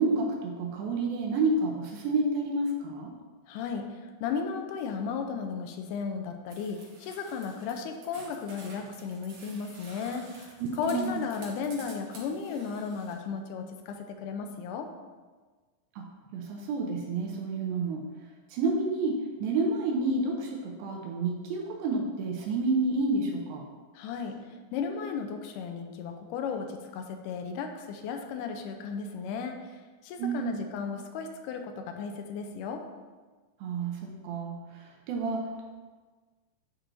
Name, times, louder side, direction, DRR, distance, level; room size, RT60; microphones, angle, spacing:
voice 1, 0.0-3.1 10.8-11.2 16.0-18.0 18.5-23.7 30.2-30.6 33.6-35.6, right 3 dB, 85° right, 0 dB, 2.5 m, -29 dB
voice 2, 3.5-14.9 23.9-32.8, left 6 dB, 80° left, 5 dB, 1.9 m, -35 dB
sound 1, 6.5-13.1, right 3 dB, 65° right, 2.4 m, -51 dB
10.0 x 4.4 x 2.6 m, 1.4 s
omnidirectional pair, 4.2 m